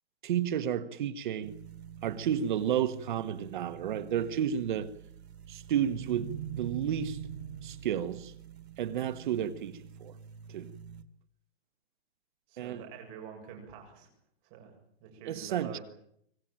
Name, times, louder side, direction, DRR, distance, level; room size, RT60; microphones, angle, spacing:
voice 1, 0.2-1.5 2.0-4.9 5.5-7.2 7.6-8.3 8.8-10.1 10.5-10.7 12.6-12.8 15.2-15.8, right 9 dB, 50° right, 1.3 m, -32 dB
sound 1, 1.4-11.0, right 8 dB, 90° right, 2.4 m, -44 dB
voice 2, 12.5-14.1 14.4-14.7 15.0-15.8, right 7 dB, 30° right, 7.2 m, -47 dB
25.5 x 17.5 x 9.0 m
hypercardioid pair, 170°, 31 cm